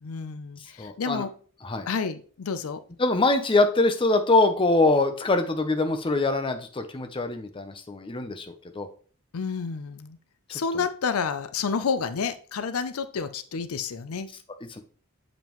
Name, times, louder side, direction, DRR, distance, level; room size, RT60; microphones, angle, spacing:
voice 1, 0.0-1.3 1.9-2.8 9.3-10.2 10.5-14.3, left 5 dB, 85° left, 12 dB, 0.5 m, -30 dB
voice 2, 0.8-1.3 1.6-1.9 3.0-8.9 14.7-14.8, left 2 dB, 25° left, 7 dB, 0.6 m, -23 dB
7.3 x 5.1 x 3.0 m, 0.42 s
head